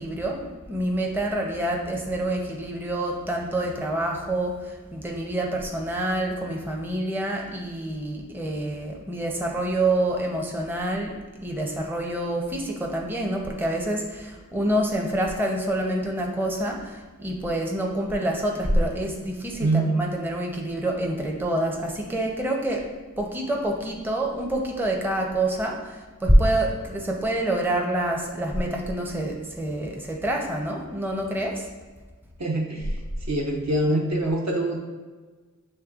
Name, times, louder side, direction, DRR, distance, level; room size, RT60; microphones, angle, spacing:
voice 1, 0.0-22.9 23.2-31.7, right 1 dB, 5° right, 0 dB, 0.6 m, -27 dB
voice 2, 19.6-19.9 32.4-32.9 33.3-34.8, right 1 dB, 55° right, 0 dB, 0.8 m, -24 dB
6.5 x 3.1 x 2.4 m, 1.3 s
wide cardioid pair, 45°, 32 cm